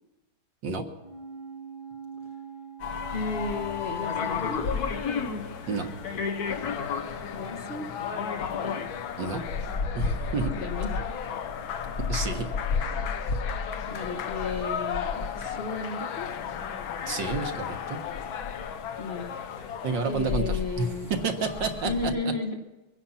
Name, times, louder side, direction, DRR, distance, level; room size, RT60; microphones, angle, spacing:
sound 1, 1.0-4.8 5.1-5.2, right 6 dB, 85° right, 3.0 m, -43 dB
sound 2, 2.8-22.1, left 5 dB, 55° left, 1.4 m, -34 dB
voice 1, 3.1-4.6 7.3-7.9 10.5-11.2 13.0-13.1 13.9-16.3 19.0-19.3 20.0-21.1 21.8-22.6, left 3 dB, 35° left, 2 dB, 1.3 m, -33 dB
sound 3, 6.4-20.2, left 8 dB, 75° left, 1.7 m, -36 dB
voice 2, 9.9-10.5 12.1-12.5 17.1-18.0 19.8-20.9 21.2-22.3, right 4 dB, 65° right, 4 dB, 2.0 m, -30 dB
24.0 x 10.0 x 5.7 m, 1.1 s
omnidirectional pair, 2.2 m